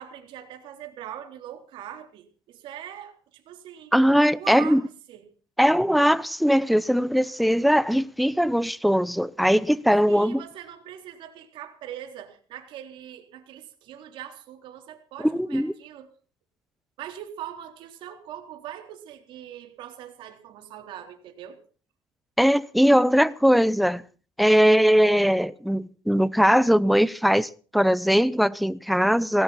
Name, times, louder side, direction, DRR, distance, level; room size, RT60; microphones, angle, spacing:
voice 1, 0.0-3.9 4.3-4.8 5.1-5.2 10.0-16.1 17.0-21.6, right 10 dB, 65° right, 3.8 m, -41 dB
voice 2, 3.9-4.8 5.6-10.4 15.2-15.7 22.4-24.0 24.4-29.4, equal, ahead, 0.7 m, -20 dB
18.5 x 17.0 x 4.3 m
cardioid pair, 120°, 9 cm